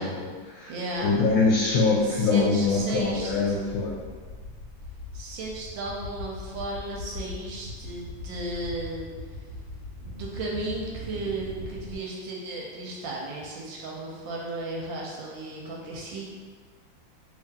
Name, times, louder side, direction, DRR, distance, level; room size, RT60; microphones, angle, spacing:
voice 1, 0.0-0.7 1.0-4.0, left 3 dB, 85° left, -4 dB, 1.4 m, -24 dB
voice 2, 0.7-1.1 2.0-3.6 5.1-9.0 10.0-16.3, right 2 dB, 75° right, -2 dB, 1.3 m, -35 dB
sound 1, 2.4-12.0, left 2 dB, 60° left, 1.4 m, -41 dB
3.1 x 2.7 x 3.6 m, 1.5 s
omnidirectional pair, 2.2 m